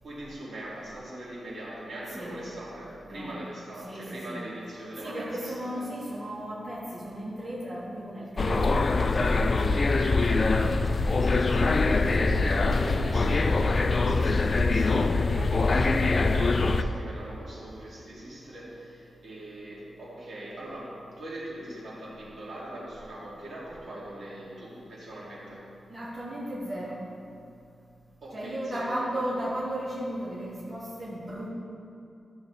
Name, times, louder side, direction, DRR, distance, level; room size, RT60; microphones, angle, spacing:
voice 1, 0.0-5.9 9.3-25.7 28.2-29.2, right 1 dB, 55° right, -7 dB, 2.4 m, -41 dB
voice 2, 3.8-4.4 5.0-8.7 16.3-16.5 25.9-27.0 28.3-31.5, right 1 dB, 25° right, -9 dB, 1.7 m, -35 dB
sound 1, 8.4-16.8, left 3 dB, 35° left, 0.3 m, -23 dB
14.0 x 7.2 x 3.3 m, 2.5 s
wide cardioid pair, 175°, 0 cm